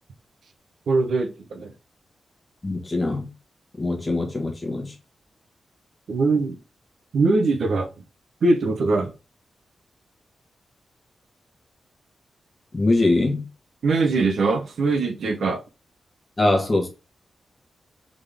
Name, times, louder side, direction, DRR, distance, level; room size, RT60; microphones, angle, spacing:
voice 1, 0.9-1.7 6.1-6.6 7.1-7.9 8.4-9.1 13.8-15.6, right 3 dB, 75° right, 0.8 m, -21 dB
voice 2, 2.6-3.3 3.8-4.9 12.7-13.5 16.4-16.9, left 2 dB, 30° left, 1.4 m, -22 dB
3.8 x 3.6 x 3.4 m
cardioid pair, 75°, 0 cm